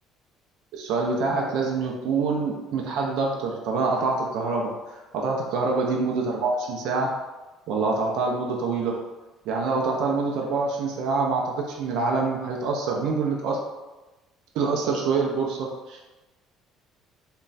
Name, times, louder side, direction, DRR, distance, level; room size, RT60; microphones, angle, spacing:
voice 1, 0.7-7.1 7.7-9.1 9.5-13.6 14.5-16.1, right 4 dB, 65° right, 0 dB, 0.5 m, -26 dB
3.1 x 2.2 x 3.9 m, 1.1 s
cardioid pair, 175°, 0 cm